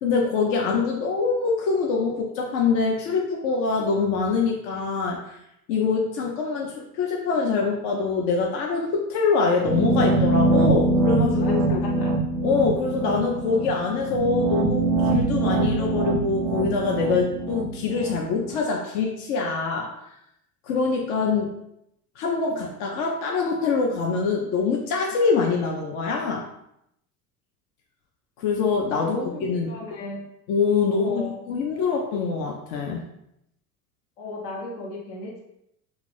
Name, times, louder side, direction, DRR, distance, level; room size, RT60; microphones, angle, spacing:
voice 1, 0.0-5.4 5.7-11.8 12.4-19.9 20.6-21.5 22.2-26.5 28.4-29.7 30.5-33.0, left 4 dB, 55° left, 0 dB, 0.6 m, -24 dB
sound 1, 9.6-18.6, right 2 dB, 50° right, 0.5 m, -24 dB
voice 2, 11.4-12.2 29.0-30.3 30.9-31.4 34.2-35.4, left 2 dB, 75° left, -2 dB, 1.0 m, -35 dB
2.6 x 2.4 x 3.2 m, 0.79 s
hypercardioid pair, 70°, 46 cm